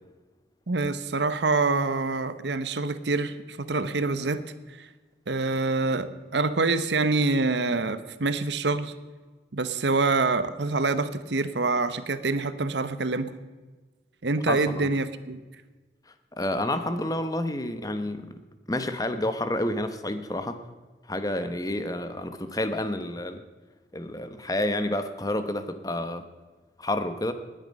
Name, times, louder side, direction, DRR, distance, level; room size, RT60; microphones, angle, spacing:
voice 1, 0.7-4.4 4.7-4.9 5.3-8.9 9.5-13.3 14.2-15.4, right 3 dB, 80° right, 12 dB, 0.9 m, -26 dB
voice 2, 14.5-14.9 16.3-18.3 18.7-20.6 21.1-23.4 23.9-26.2 26.8-27.3, left 1 dB, 20° left, 9 dB, 0.9 m, -29 dB
20.0 x 9.1 x 5.4 m, 1.3 s
head